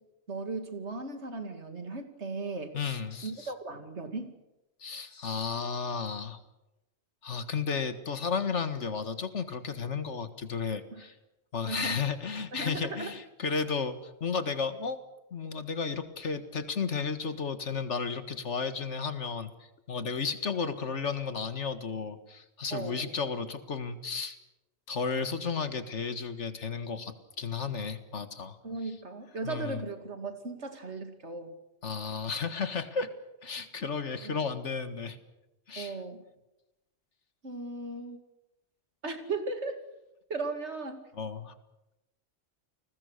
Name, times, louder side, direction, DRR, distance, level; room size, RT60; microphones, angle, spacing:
voice 1, 0.3-2.7 3.2-4.4 10.9-11.0 11.7-12.0 12.5-13.1 22.7-23.1 28.6-31.5 34.2-34.4 35.8-36.2 37.4-38.2 39.0-39.8 40.3-41.1, right 3 dB, 75° right, 7 dB, 2.8 m, -37 dB
voice 2, 2.7-3.5 4.8-6.4 7.2-11.1 11.5-15.0 15.3-19.5 19.9-24.4 24.9-28.6 29.4-29.8 31.8-33.1 33.4-35.2 35.7-36.0 41.2-41.5, left 5 dB, 85° left, 10 dB, 2.0 m, -33 dB
30.0 x 20.0 x 6.6 m, 0.95 s
omnidirectional pair, 1.2 m